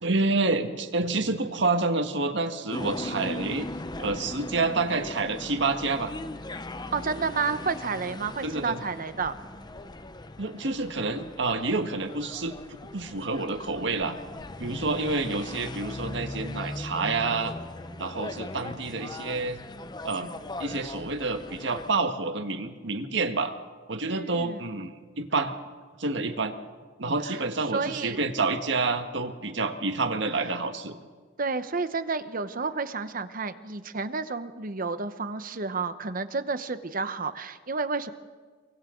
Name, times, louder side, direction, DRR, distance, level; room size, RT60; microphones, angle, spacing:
voice 1, 0.0-3.7 4.0-6.1 8.4-8.8 10.4-12.6 12.9-14.2 14.6-17.6 18.0-19.6 20.0-20.3 20.6-23.5 23.9-25.5 26.0-26.5 27.0-31.0, right 3 dB, 70° right, 7 dB, 1.6 m, -28 dB
sound 1, 2.7-21.9, left 2 dB, 25° left, 0.8 m, -39 dB
voice 2, 6.9-9.3 24.1-24.6 27.7-28.2 31.4-38.1, right 4 dB, 50° right, 11 dB, 1.0 m, -30 dB
30.0 x 23.5 x 3.9 m, 1.5 s
head